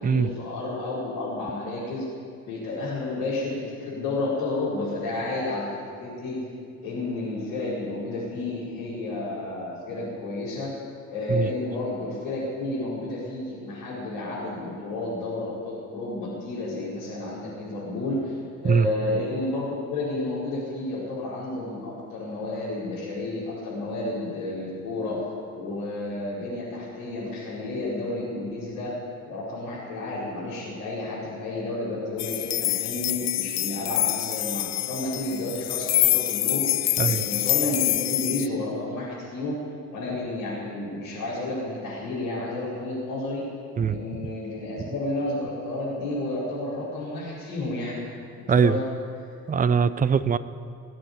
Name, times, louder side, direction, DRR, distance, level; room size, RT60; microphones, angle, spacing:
voice 1, 0.0-2.0 2.4-5.7 6.0-6.4 6.8-10.7 11.1-18.4 18.6-25.2 25.5-28.9 29.3-39.6 39.9-43.4 43.9-48.0 48.4-48.8, left 2 dB, 65° left, -10 dB, 5.2 m, -31 dB
sound 1, 32.2-38.5, left 16 dB, 40° left, 0.5 m, -26 dB
voice 2, 48.5-48.8 49.5-50.4, right 6 dB, 20° right, 16 dB, 0.6 m, -21 dB
21.0 x 7.7 x 8.4 m, 2.3 s
figure-of-eight pair, 50°, 41 cm